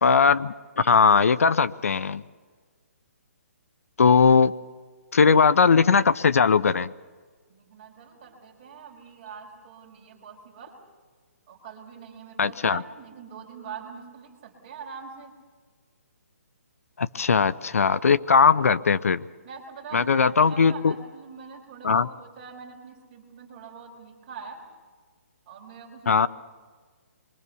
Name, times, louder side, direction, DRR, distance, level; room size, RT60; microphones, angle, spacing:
voice 1, 0.0-2.2 4.0-4.5 5.1-6.9 12.4-12.8 17.0-19.2 19.9-20.9 21.8-22.1 26.1-26.3, left 5 dB, 65° left, 15 dB, 0.8 m, -19 dB
voice 2, 7.5-10.8 11.5-15.3 19.4-24.6 25.5-26.2, right 6 dB, 20° right, -2 dB, 5.1 m, -43 dB
27.5 x 23.5 x 6.9 m, 1.5 s
hypercardioid pair, 175°, 8 cm